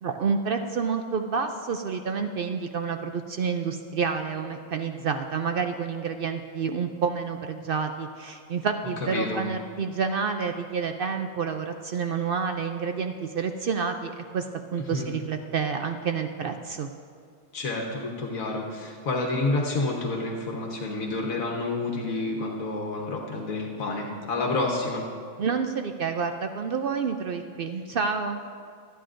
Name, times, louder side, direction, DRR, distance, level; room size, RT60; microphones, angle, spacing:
voice 1, 0.0-16.9 25.4-28.5, right 5 dB, 65° right, 6 dB, 0.5 m, -29 dB
voice 2, 9.0-9.4 14.9-15.1 17.5-25.0, left 2 dB, 80° left, -1 dB, 1.5 m, -29 dB
25.0 x 9.3 x 2.6 m, 2.2 s
omnidirectional pair, 1.4 m